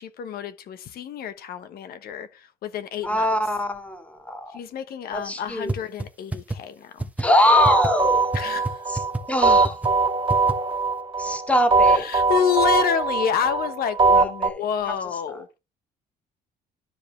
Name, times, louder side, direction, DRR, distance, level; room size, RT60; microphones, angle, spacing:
voice 1, 0.0-3.3 4.5-7.1 8.3-8.8 11.9-15.5, left 8 dB, 65° left, 1.2 m, -28 dB
voice 2, 3.0-4.6 5.1-5.7 7.2-8.2 9.3-9.8 11.2-12.1 14.2-15.0 15.3-15.6, left 1 dB, 10° left, 2.0 m, -23 dB
sound 1, 5.7-5.8 6.0-6.1 6.3-6.6 7.0-7.2 7.6-7.9 8.3-8.4 8.6-8.7 9.0-9.2 9.6-9.9 10.3-10.5, right 2 dB, 10° right, 1.0 m, -26 dB
sound 2, 7.4-14.5, right 4 dB, 30° right, 2.6 m, -21 dB
12.0 x 5.0 x 3.5 m
cardioid pair, 110°, 17 cm